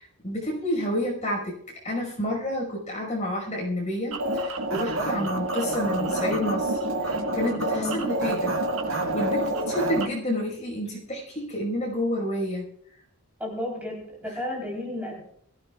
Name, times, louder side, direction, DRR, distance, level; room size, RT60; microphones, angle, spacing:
voice 1, 0.0-1.6 1.8-8.5 8.9-12.7, equal, 30° left, -1 dB, 5.3 m, -29 dB
sound 1, 4.1-10.1, right 1 dB, 70° right, 1.5 m, -27 dB
voice 2, 13.4-15.2, left 1 dB, 5° right, -3 dB, 3.7 m, -32 dB
23.0 x 15.0 x 2.4 m, 0.66 s
head